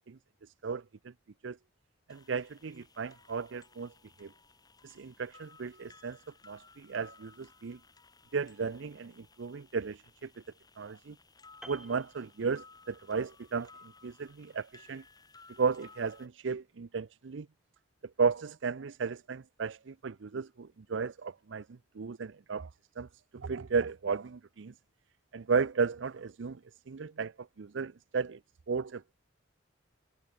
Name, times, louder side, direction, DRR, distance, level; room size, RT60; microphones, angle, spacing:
voice 1, 0.6-1.1 1.4-1.6 2.1-3.9 4.2-4.3 4.8-6.2 6.5-7.8 8.3-10.3 10.8-11.1 11.7-13.7 14.0-15.0 15.6-17.5 18.2-22.7 23.0-23.1 23.3-24.7 25.3-26.6 26.9-28.4 28.7-29.1, right 5 dB, 70° right, 0.5 m, -34 dB
sound 1, 2.1-16.3, left 4 dB, 20° left, 2.2 m, -59 dB
Piano, 11.6-13.1 13.3-13.6, right 1 dB, 5° right, 1.0 m, -53 dB
head